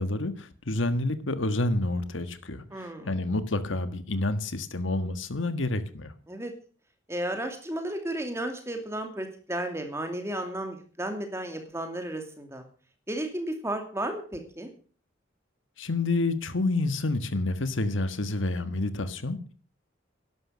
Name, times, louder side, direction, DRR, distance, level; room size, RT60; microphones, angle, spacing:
voice 1, 0.0-6.1 15.8-19.5, left 2 dB, 80° left, 1.5 m, -29 dB
voice 2, 2.7-3.2 6.3-6.5 7.1-12.6 13.1-14.7, right 1 dB, 15° right, 2.5 m, -33 dB
12.0 x 11.5 x 6.3 m
head